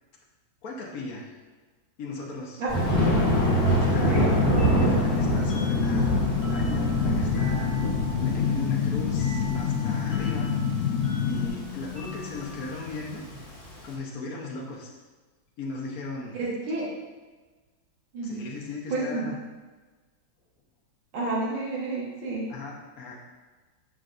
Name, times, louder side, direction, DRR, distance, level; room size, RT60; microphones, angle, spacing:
voice 1, 0.6-1.3 2.0-2.6 3.9-4.3 4.8-10.5 11.3-13.2 13.8-14.9 15.6-16.4 18.2-19.4 22.5-23.2, left 3 dB, 55° left, -3 dB, 1.2 m, -37 dB
Thunder, 2.7-13.8, right 1 dB, 35° left, 1.6 m, -27 dB
sound 1, 2.9-11.5, left 7 dB, 70° left, 0.8 m, -27 dB
sound 2, 4.6-13.9, left 5 dB, 15° right, 1.5 m, -40 dB
voice 2, 16.4-16.9 18.1-18.4 18.9-19.2 21.1-22.5, right 2 dB, 85° right, -5 dB, 2.2 m, -30 dB
7.0 x 6.3 x 2.5 m, 1.3 s
omnidirectional pair, 2.2 m